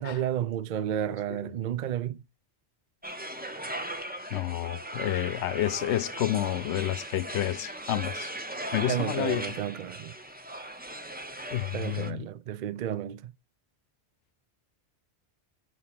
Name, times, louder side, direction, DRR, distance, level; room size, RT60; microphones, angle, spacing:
voice 1, 0.0-2.2 8.9-10.1 11.7-13.3, right 10 dB, 55° right, 0.5 m, -32 dB
sound 1, 3.0-12.1, right 1 dB, 10° right, 0.5 m, -38 dB
voice 2, 4.3-8.3 8.7-9.5 11.5-12.2, left 12 dB, 85° left, 0.9 m, -30 dB
5.9 x 4.3 x 5.8 m
omnidirectional pair, 1.1 m